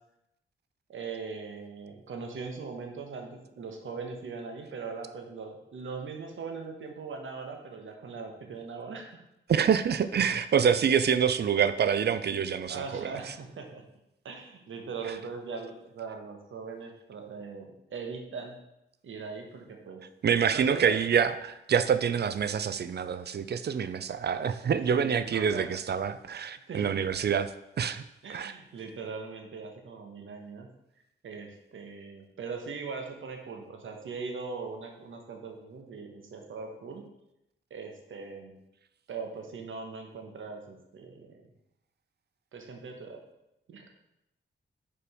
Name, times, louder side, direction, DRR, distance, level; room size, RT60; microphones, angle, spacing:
voice 1, 0.9-9.2 12.7-13.8 14.2-18.6 19.0-20.0 20.5-21.0 24.9-25.7 26.7-26.9 28.2-30.7 31.2-37.1 37.7-38.6 39.1-41.5 42.5-43.2 43.7-43.9, right 4 dB, 75° right, 3 dB, 1.1 m, -40 dB
voice 2, 9.5-13.1 20.2-27.5 27.8-28.0 28.3-28.5, right 7 dB, 55° right, 12 dB, 0.4 m, -26 dB
5.0 x 4.8 x 4.9 m, 0.86 s
cardioid pair, 70°, 20 cm